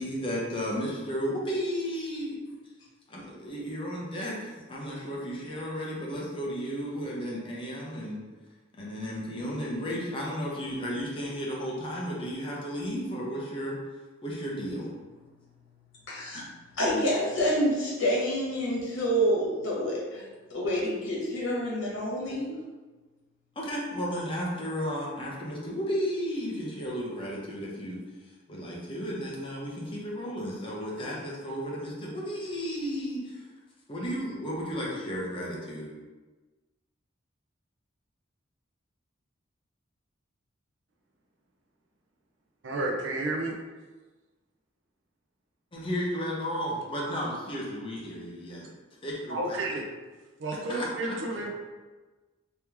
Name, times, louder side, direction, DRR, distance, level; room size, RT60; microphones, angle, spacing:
voice 1, 0.0-2.4 3.1-8.2 8.7-13.8 14.2-14.9 23.6-28.0 28.5-33.5 33.9-36.0 45.7-48.7 49.0-49.6 50.7-51.4, equal, 25° left, -4 dB, 0.8 m, -33 dB
voice 2, 16.1-16.4 16.8-20.2 20.5-22.5, equal, 70° left, -6 dB, 1.3 m, -27 dB
voice 3, 42.6-43.5 49.3-49.9 50.4-51.5, right 2 dB, 70° right, 0 dB, 0.6 m, -31 dB
3.3 x 3.0 x 3.4 m, 1.3 s
head